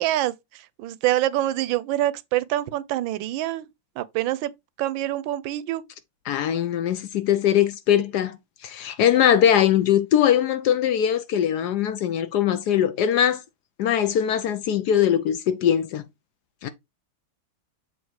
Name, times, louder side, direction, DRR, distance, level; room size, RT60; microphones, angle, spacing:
voice 1, 0.0-3.7 4.0-4.5 4.8-5.8, right 14 dB, 80° right, 1.3 m, -26 dB
voice 2, 6.3-8.4 8.6-13.4 13.8-16.0 16.6-16.7, left 10 dB, 70° left, 1.0 m, -21 dB
7.2 x 3.0 x 4.6 m
omnidirectional pair, 2.1 m